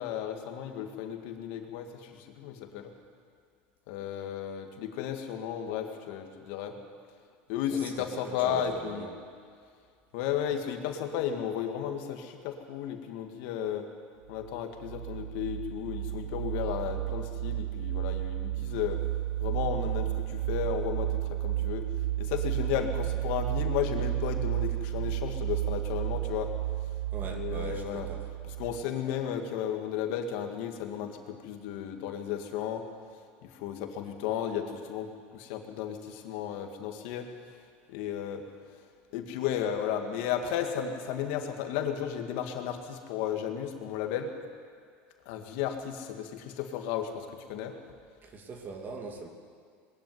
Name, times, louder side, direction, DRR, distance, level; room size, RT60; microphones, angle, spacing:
voice 1, 0.0-2.9 3.9-6.8 7.5-9.1 10.1-13.9 14.3-19.0 19.4-21.9 22.2-26.5 27.2-28.1 28.5-32.8 33.4-37.3 37.9-38.4 39.1-44.3 45.3-47.8, left 9 dB, 70° left, 5 dB, 2.2 m, -34 dB
voice 2, 7.7-9.1 27.1-28.3 48.2-49.3, right 4 dB, 30° right, 4 dB, 2.6 m, -41 dB
sound 1, 14.4-28.8, right 14 dB, 60° right, 1.0 m, -32 dB
21.0 x 13.5 x 9.5 m, 2.1 s
supercardioid pair, 125°, 6 cm